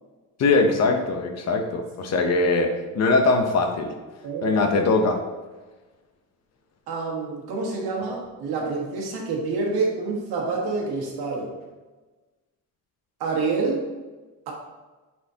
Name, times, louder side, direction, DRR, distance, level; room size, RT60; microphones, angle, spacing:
voice 1, 0.4-2.7 2.9-3.9 4.4-5.2, left 3 dB, 45° left, 4 dB, 0.8 m, -21 dB
voice 2, 4.2-4.6 6.9-11.5 13.2-13.8 14.5-14.6, right 3 dB, 85° right, -1 dB, 1.7 m, -27 dB
8.3 x 4.3 x 2.8 m, 1.2 s
cardioid pair, 175°, 37 cm